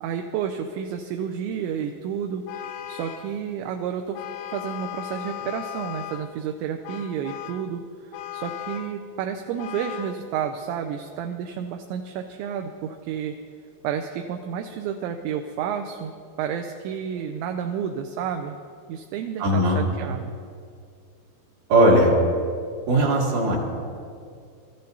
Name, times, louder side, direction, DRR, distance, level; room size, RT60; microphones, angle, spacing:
voice 1, 0.0-4.2 4.5-13.3 13.8-16.1 16.4-18.5 18.9-20.4, right 8 dB, 80° right, 5 dB, 2.7 m, -31 dB
Vehicle horn car horn honking, 2.5-3.4 4.1-6.3 6.8-7.7 8.1-9.0 9.6-10.2, left 12 dB, 90° left, 3.3 m, -36 dB
voice 2, 19.4-19.8 21.7-22.1 22.9-23.6, right 1 dB, 65° right, -4 dB, 4.2 m, -18 dB
26.0 x 13.5 x 2.7 m, 2.3 s
omnidirectional pair, 5.6 m